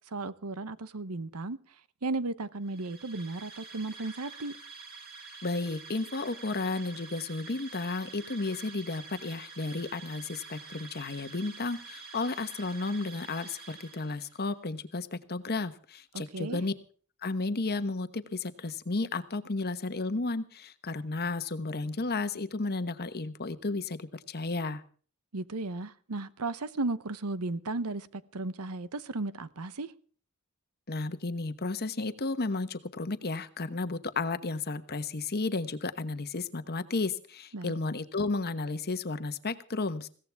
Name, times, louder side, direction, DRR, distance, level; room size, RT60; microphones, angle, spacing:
voice 1, 0.1-1.6 2.0-4.5 16.1-16.6 25.3-29.9 37.5-37.7, right 2 dB, 80° right, 0.9 m, -35 dB
sound 1, 2.6-14.5, right 4 dB, 45° right, 7.0 m, -47 dB
voice 2, 5.4-16.7 17.2-24.8 30.9-40.1, left 3 dB, 45° left, 1.2 m, -33 dB
21.5 x 16.5 x 3.5 m
head